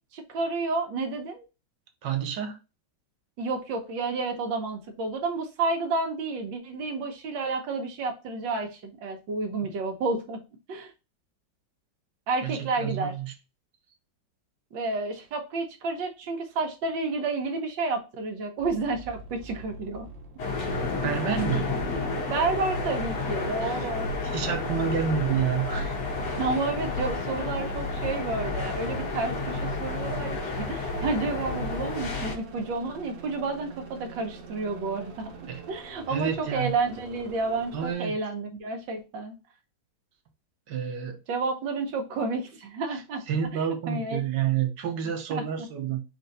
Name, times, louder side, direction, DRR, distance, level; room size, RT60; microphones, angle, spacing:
voice 1, 0.1-1.4 3.4-10.4 10.7-10.9 12.3-13.1 14.7-20.1 22.3-24.1 26.4-35.3 35.7-39.3 41.3-43.2 43.9-44.2 45.3-45.4, right 3 dB, 90° right, 1.7 m, -30 dB
voice 2, 2.0-2.6 9.6-9.7 12.4-13.3 20.6-21.7 23.6-23.9 24.2-26.0 35.5-35.6 36.1-36.7 37.7-38.1 40.7-41.2 42.9-43.0 43.3-46.0, right 8 dB, 75° right, 1.4 m, -29 dB
sound 1, 18.6-37.9, right 2 dB, 50° right, 1.1 m, -44 dB
sound 2, 20.4-32.4, left 3 dB, 70° left, 1.8 m, -31 dB
4.4 x 2.6 x 3.9 m
omnidirectional pair, 2.0 m